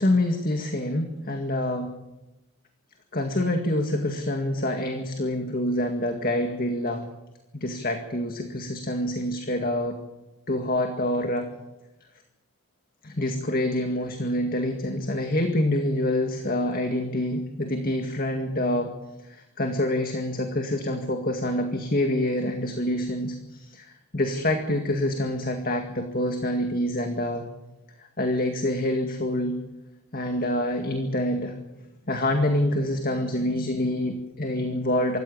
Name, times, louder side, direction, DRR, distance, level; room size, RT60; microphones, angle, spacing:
voice 1, 0.0-1.9 3.1-7.1 7.5-10.0 10.5-11.5 13.0-18.9 19.2-27.5 28.0-29.6 30.1-31.5 32.1-35.2, left 1 dB, 40° left, 5 dB, 2.0 m, -26 dB
24.5 x 14.5 x 8.7 m, 0.97 s
head